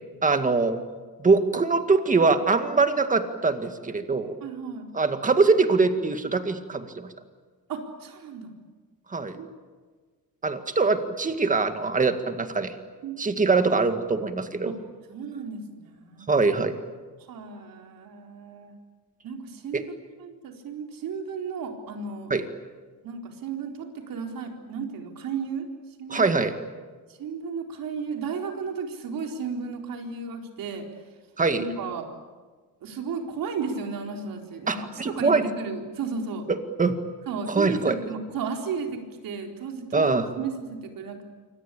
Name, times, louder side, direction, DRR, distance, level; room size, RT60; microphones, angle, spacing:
voice 1, 0.2-0.8 1.2-4.4 4.9-7.1 9.1-9.4 10.4-12.7 13.2-14.7 16.3-16.7 19.7-19.8 22.3-22.5 26.1-26.6 31.4-31.6 34.7-35.4 36.5-37.0 37.5-38.0 39.9-40.3, right 4 dB, 20° right, 8 dB, 2.0 m, -23 dB
voice 2, 4.4-4.9 7.7-8.5 9.3-9.5 13.0-13.3 14.6-14.8 15.1-16.3 17.3-18.7 19.2-19.8 20.2-22.3 23.0-25.7 26.0-26.4 27.2-30.9 31.5-32.1 32.8-36.4 37.3-41.3, right 5 dB, 70° right, 3 dB, 4.2 m, -34 dB
27.0 x 25.0 x 8.5 m, 1.4 s
cardioid pair, 145°, 35 cm